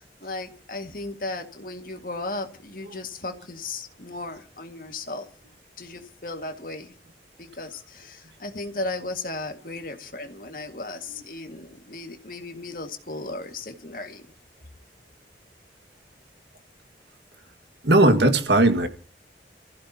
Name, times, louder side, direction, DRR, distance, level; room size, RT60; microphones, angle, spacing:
voice 1, 0.0-5.3 5.8-6.9 7.4-14.3, left 2 dB, 50° left, 2.0 m, -35 dB
voice 2, 17.8-18.9, right 2 dB, 75° right, 1.9 m, -18 dB
28.0 x 15.0 x 2.9 m
head